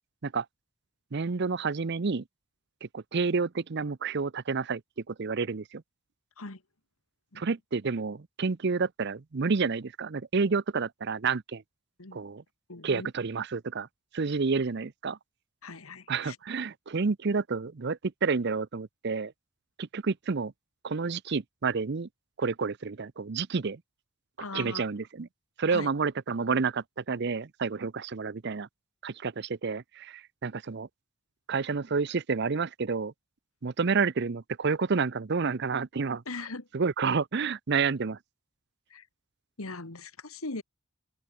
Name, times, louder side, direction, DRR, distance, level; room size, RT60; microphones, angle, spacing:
voice 1, 1.1-2.2 2.8-4.8 5.1-5.8 7.4-11.6 12.1-12.4 12.8-13.9 14.1-15.2 16.1-19.3 19.8-20.5 20.8-22.1 22.4-23.8 24.5-25.3 25.6-28.7 29.0-30.9 31.5-33.1 33.6-36.2 36.7-38.2, right 4 dB, 50° right, 0.6 m, -29 dB
voice 2, 12.7-13.1 15.6-16.4 24.4-24.8 25.7-25.9 36.3-36.7 38.9-39.1 39.6-40.6, left 3 dB, 80° left, 2.0 m, -39 dB
open air
head